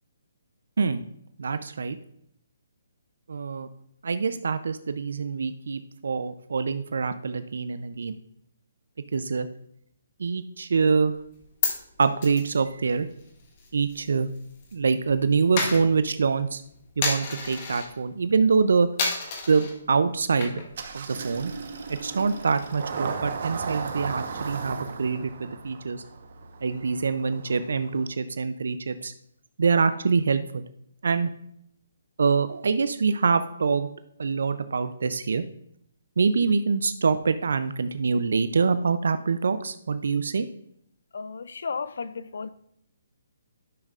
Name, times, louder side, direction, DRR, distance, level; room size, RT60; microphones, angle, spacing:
voice 1, 1.4-2.0 3.3-3.7 4.0-8.2 9.1-9.5 10.2-11.1 12.0-13.1 13.7-14.3 14.7-16.6 17.0-18.9 19.4-20.6 20.9-21.5 21.9-26.0 26.6-29.1 29.6-30.6 31.0-31.3 32.2-33.9 34.2-35.4 36.2-40.5, right 5 dB, 75° right, 11 dB, 0.4 m, -25 dB
Coin (dropping), 11.2-14.7 15.0-17.9 18.3-18.6 19.0-19.7 20.2-20.8 21.1-21.2 21.6-23.5, left 4 dB, 35° left, 1.3 m, -33 dB
Engine starting, 20.7-28.1, right 5 dB, 55° right, 1.0 m, -36 dB
voice 2, 41.1-42.5, left 5 dB, 70° left, 14 dB, 0.4 m, -34 dB
10.5 x 6.6 x 2.4 m, 0.73 s
hypercardioid pair, 155°, 0 cm